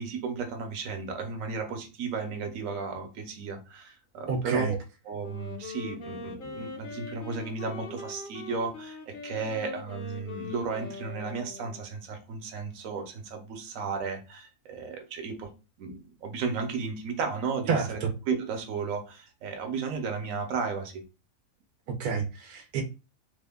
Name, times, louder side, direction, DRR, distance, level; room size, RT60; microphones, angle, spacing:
voice 1, 0.0-4.8 5.1-15.5 15.8-18.0 18.3-21.0, right 5 dB, 70° right, 1.1 m, -34 dB
voice 2, 4.3-4.7 17.7-18.1 21.9-22.8, right 5 dB, 90° right, 1.1 m, -29 dB
Wind instrument woodwind instrument, 5.2-11.9, left 3 dB, 50° left, 0.7 m, -42 dB
3.3 x 2.1 x 3.5 m
omnidirectional pair, 1.5 m